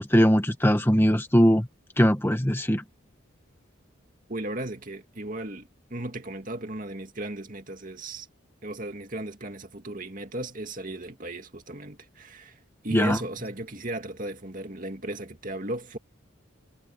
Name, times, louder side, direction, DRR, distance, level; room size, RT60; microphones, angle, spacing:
voice 1, 0.0-1.7 2.0-2.8 12.9-13.2, equal, 10° left, 1.5 m, -20 dB
voice 2, 4.3-8.3 8.6-12.6 12.8-16.0, right 1 dB, 40° right, 2.4 m, -36 dB
head